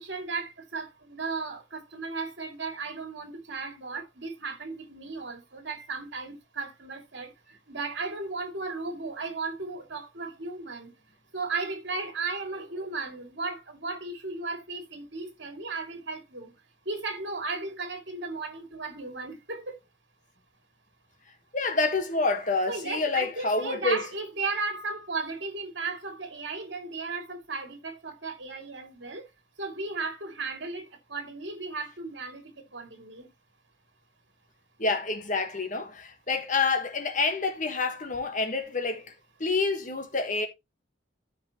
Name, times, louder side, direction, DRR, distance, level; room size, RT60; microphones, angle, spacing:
voice 1, 0.0-10.9 11.3-16.5 16.8-19.8 22.7-29.3 29.6-33.3, right 3 dB, 65° right, 2.5 m, -35 dB
voice 2, 21.5-24.0 34.8-39.1 39.4-40.5, left 3 dB, 40° left, 1.4 m, -28 dB
13.5 x 4.8 x 2.9 m
head